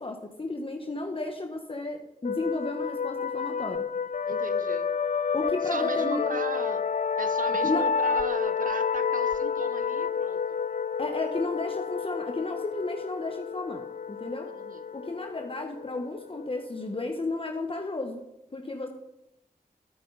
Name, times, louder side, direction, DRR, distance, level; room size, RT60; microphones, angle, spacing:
voice 1, 0.0-3.9 5.3-6.3 7.6-7.9 11.0-14.5 14.9-18.2 18.5-18.9, left 2 dB, 35° left, 3 dB, 1.3 m, -33 dB
sound 1, 2.2-17.6, left 6 dB, 55° left, 0.4 m, -30 dB
voice 2, 4.3-4.9 5.6-6.8 7.2-10.6 14.6-14.8, right 5 dB, 65° right, 11 dB, 1.0 m, -37 dB
12.0 x 9.6 x 4.1 m, 0.88 s
cardioid pair, 40°, 15 cm